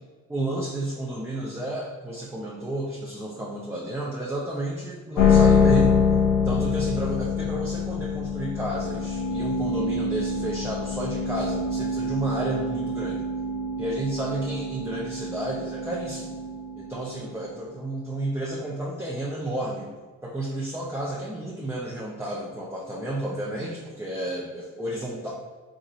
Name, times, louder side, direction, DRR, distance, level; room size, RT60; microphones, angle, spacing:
voice 1, 0.3-6.0 6.4-13.2 13.8-16.4 16.8-19.9 20.2-25.3, right 1 dB, 10° right, -4 dB, 0.4 m, -31 dB
sound 1, 5.2-17.5, left 4 dB, 75° left, 0.7 m, -25 dB
3.8 x 2.5 x 2.7 m, 1.4 s
cardioid pair, 90°, 30 cm